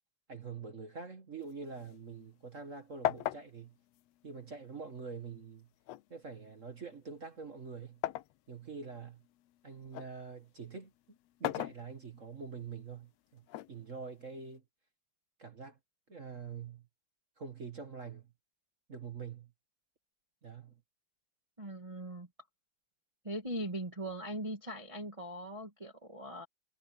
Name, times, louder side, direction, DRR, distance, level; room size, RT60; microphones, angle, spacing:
voice 1, 0.3-3.8 4.2-5.7 6.1-8.0 8.5-9.2 9.6-14.6 15.4-15.8 16.1-16.9 17.4-18.3 18.9-19.5 20.4-20.8, right 5 dB, 35° right, 1.4 m, -45 dB
sound 1, 1.4-2.7 3.0-5.0 5.9-8.4 8.9-10.2 11.2-12.4 13.5-14.5, left 14 dB, 75° left, 1.6 m, -39 dB
voice 2, 21.6-22.3 23.2-26.5, right 1 dB, 10° right, 2.1 m, -40 dB
omnidirectional pair, 3.6 m